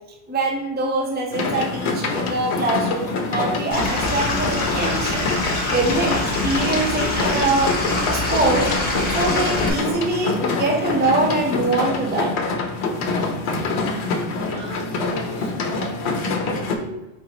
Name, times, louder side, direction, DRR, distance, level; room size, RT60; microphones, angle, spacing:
voice 1, 0.3-5.2 5.7-7.7 8.1-8.7 9.1-12.3, right 2 dB, 10° right, 0 dB, 0.6 m, -23 dB
sound 1, 1.3-16.8, left 3 dB, 80° left, 0.9 m, -25 dB
Stream / Liquid, 3.7-9.7, left 2 dB, 50° left, 1.1 m, -25 dB
voice 2, 14.3-17.1, equal, 65° right, 1 dB, 1.1 m, -37 dB
4.8 x 3.7 x 2.9 m, 1.0 s
omnidirectional pair, 1.1 m